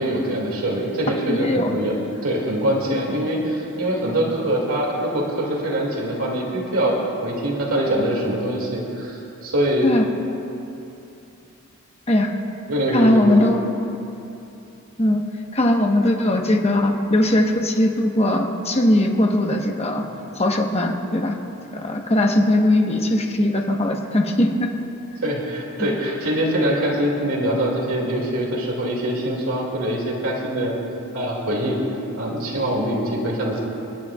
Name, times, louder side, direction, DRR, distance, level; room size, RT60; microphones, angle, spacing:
voice 1, 0.0-1.9 2.2-9.9 12.7-13.5 25.2-30.7 31.1-31.8 32.2-33.6, right 1 dB, 75° right, -2 dB, 2.4 m, -23 dB
voice 2, 1.3-1.7 9.8-10.0 12.1-12.3 12.9-13.7 15.0-15.2 15.5-20.0 20.3-21.4 21.7-24.7 25.8-25.9, left 1 dB, 30° left, 2 dB, 1.1 m, -19 dB
29.0 x 10.5 x 2.4 m, 2.8 s
head